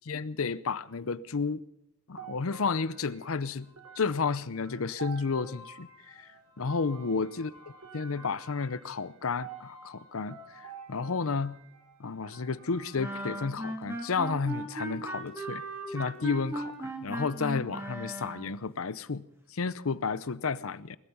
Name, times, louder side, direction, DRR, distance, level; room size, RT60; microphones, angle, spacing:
voice 1, 0.1-1.6 2.1-3.7 4.0-6.3 6.6-7.5 7.9-11.6 12.0-21.0, left 4 dB, 75° left, 0.7 m, -32 dB
sound 1, 2.2-13.5, right 4 dB, 90° right, 3.9 m, -49 dB
sound 2, 13.0-18.6, right 1 dB, 10° right, 2.6 m, -37 dB
20.0 x 13.5 x 5.5 m
head